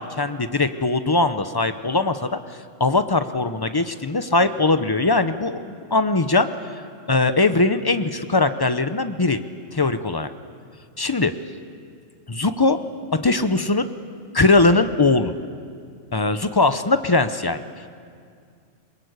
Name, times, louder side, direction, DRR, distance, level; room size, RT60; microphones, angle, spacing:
voice 1, 0.0-2.4 2.8-5.6 5.9-6.5 7.1-9.4 9.7-10.3 11.0-11.3 12.3-12.8 13.2-13.9 14.3-15.3 16.1-17.6, left 3 dB, 25° left, 10 dB, 0.5 m, -20 dB
23.0 x 21.0 x 8.1 m, 2.2 s
omnidirectional pair, 1.3 m